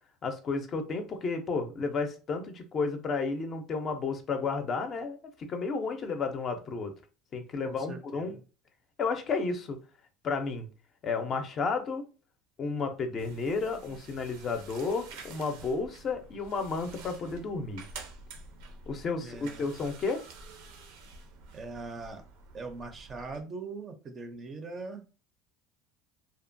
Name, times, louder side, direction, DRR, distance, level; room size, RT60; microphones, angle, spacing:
voice 1, 0.2-6.9 7.3-8.3 9.0-9.8 10.2-10.7 11.0-12.0 12.6-17.8 18.9-20.2, left 4 dB, 35° left, 6 dB, 0.4 m, -32 dB
voice 2, 7.6-8.4 19.2-19.7 21.5-22.2 22.5-25.0, right 3 dB, 30° right, 7 dB, 0.5 m, -41 dB
sound 1, 13.2-23.4, right 4 dB, 80° right, 0.5 m, -49 dB
2.7 x 2.1 x 2.5 m, 0.34 s
cardioid pair, 130°, 0 cm